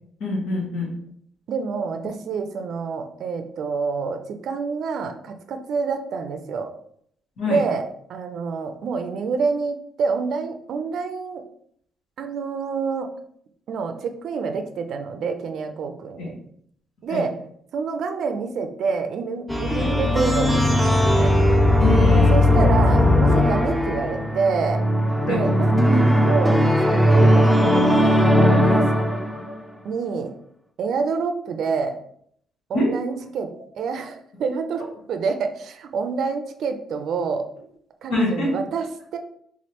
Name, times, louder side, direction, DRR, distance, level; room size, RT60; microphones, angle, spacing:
voice 1, 0.2-1.0 7.4-7.7 16.2-16.4 17.1-17.3 19.8-19.9 21.8-22.3 25.3-25.5 32.7-32.9 38.1-38.6, left 2 dB, 85° left, -3 dB, 1.6 m, -25 dB
voice 2, 1.5-6.7 7.5-7.8 8.1-11.4 12.2-13.1 13.7-16.3 17.0-17.3 17.7-21.4 22.3-24.8 25.2-29.2 29.8-30.3 30.8-32.0 32.7-33.5 33.8-37.5 38.0-38.9 39.1-39.2, right 5 dB, 70° right, 7 dB, 0.4 m, -27 dB
sound 1, 19.5-29.5, left 1 dB, ahead, 0.5 m, -18 dB
3.7 x 3.2 x 2.9 m, 0.67 s
cardioid pair, 90°, 0 cm